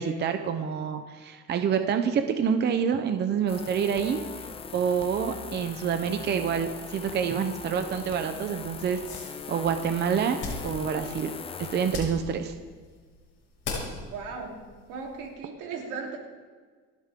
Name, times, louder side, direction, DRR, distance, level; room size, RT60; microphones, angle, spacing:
voice 1, 0.0-4.2 4.7-11.3 11.7-12.5, right 7 dB, 35° right, 7 dB, 0.8 m, -27 dB
sound 1, 3.5-12.0, left 6 dB, 20° left, 0.5 m, -40 dB
sound 2, 8.0-15.3, left 3 dB, 40° left, 6.1 m, -41 dB
voice 2, 14.0-14.5 14.9-16.2, right 5 dB, 85° right, -1 dB, 3.8 m, -37 dB
29.5 x 10.5 x 3.8 m, 1.5 s
cardioid pair, 165°, 30 cm